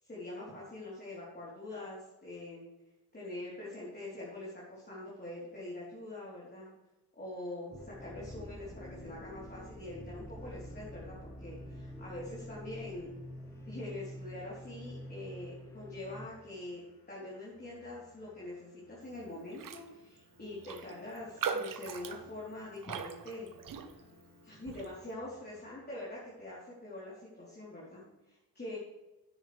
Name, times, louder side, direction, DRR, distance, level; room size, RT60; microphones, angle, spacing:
voice 1, 0.0-2.6 3.1-6.7 7.1-13.1 13.7-16.8 17.1-23.5 24.4-28.8, left 1 dB, 25° left, -6 dB, 3.8 m, -44 dB
sound 1, 7.7-16.3, equal, 5° left, 0.8 m, -47 dB
sound 2, 7.8-26.4, left 2 dB, 55° left, 2.5 m, -64 dB
Raindrop, 19.5-19.9 20.2-20.3 20.6-24.2 24.7-24.9, right 6 dB, 55° right, 1.0 m, -40 dB
12.5 x 9.9 x 3.4 m, 1.0 s
cardioid pair, 105°, 39 cm